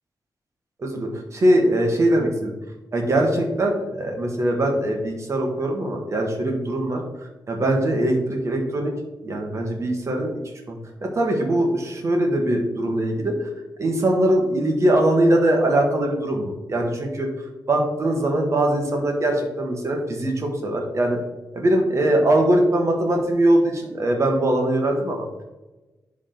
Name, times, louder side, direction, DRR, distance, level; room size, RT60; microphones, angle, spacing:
voice 1, 0.8-2.5 2.9-7.0 7.5-8.9 9.2-10.8 11.0-13.3 13.8-17.3 17.7-21.2 21.5-25.2, right 1 dB, 40° right, 2 dB, 1.6 m, -21 dB
11.0 x 3.7 x 4.0 m, 1.1 s
wide cardioid pair, 145°, 8 cm